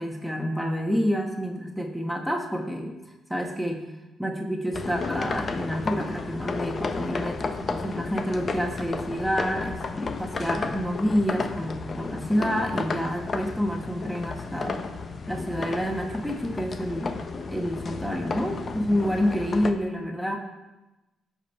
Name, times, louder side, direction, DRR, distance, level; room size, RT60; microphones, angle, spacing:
voice 1, 0.0-2.9 3.3-3.9 4.2-14.8 15.3-20.4, equal, ahead, 1 dB, 1.5 m, -28 dB
sound 1, 4.7-19.7, left 4 dB, 40° left, 0.9 m, -33 dB
16.0 x 5.4 x 4.5 m, 1.0 s
cardioid pair, 90°, 0 cm